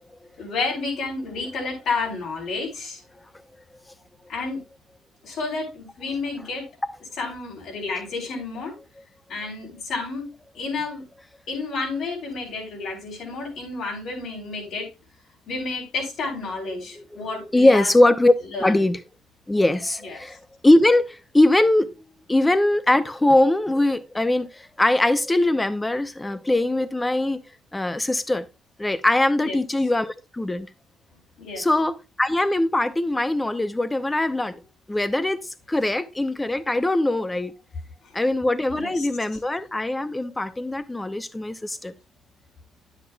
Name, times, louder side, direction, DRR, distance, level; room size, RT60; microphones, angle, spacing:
voice 1, 0.4-3.0 4.3-4.6 5.2-6.7 7.2-8.7 9.3-10.2 10.5-11.0 11.5-14.9 15.5-17.9 18.5-18.7 20.0-20.4 29.4-29.6 31.4-31.6 38.7-39.1, left 3 dB, 70° left, 3.9 m, -30 dB
voice 2, 16.9-18.3 18.6-19.0 19.5-27.4 27.7-28.5 28.8-30.7 31.6-34.6 34.9-37.5 38.1-41.9, left 1 dB, 15° left, 0.7 m, -21 dB
10.0 x 8.1 x 2.3 m
cardioid pair, 95°, 0 cm